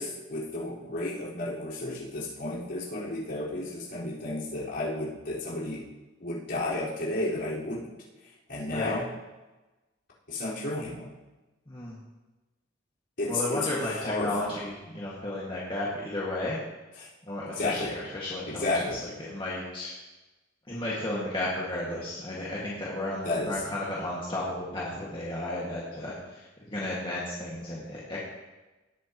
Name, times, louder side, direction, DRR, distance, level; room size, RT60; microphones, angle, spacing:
voice 1, 0.0-5.8 6.2-7.9 8.2-9.1 10.3-11.1 13.2-14.6 17.0-17.1 17.6-17.9 18.5-19.0 23.2-23.6, left 2 dB, 60° left, -8 dB, 4.6 m, -32 dB
voice 2, 11.7-12.0 13.3-16.6 17.3-19.9 20.7-28.2, left 1 dB, 25° left, -6 dB, 2.0 m, -33 dB
18.0 x 9.3 x 3.0 m, 1.1 s
head